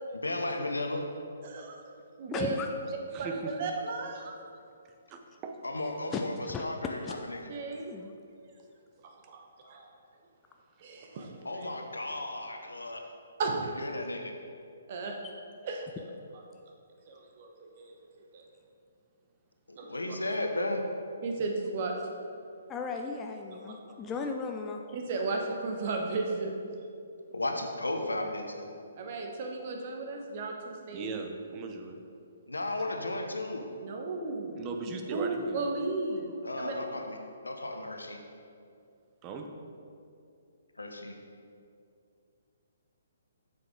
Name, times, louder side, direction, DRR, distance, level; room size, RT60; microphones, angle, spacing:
voice 1, 0.2-1.0 5.6-6.3 6.6-7.5 11.4-13.0 13.8-14.3 19.7-20.8 27.3-28.7 32.5-33.7 36.4-37.2 37.4-38.2 40.8-41.2, left 2 dB, 80° left, 4 dB, 0.9 m, -34 dB
voice 2, 1.4-1.8 2.2-2.6 3.2-4.3 7.5-7.9 9.0-9.9 10.8-11.3 13.4-13.7 14.9-15.1 15.6-15.8 17.1-17.5 17.8-17.9 18.3-18.4 19.8-20.2 21.2-22.2 24.9-26.5 29.0-31.2 33.8-34.7 35.1-36.7, right 3 dB, 40° right, 1 dB, 1.1 m, -34 dB
voice 3, 2.3-2.7 6.1-6.6 7.0-7.2 7.9-8.1 22.7-24.8, left 5 dB, 15° left, 3 dB, 0.4 m, -36 dB
voice 4, 3.1-3.5 5.1-5.5 30.9-32.0 34.6-35.7 39.2-39.5, right 4 dB, 25° right, 4 dB, 0.8 m, -38 dB
7.8 x 6.9 x 3.8 m, 2.5 s
figure-of-eight pair, 130°, 0 cm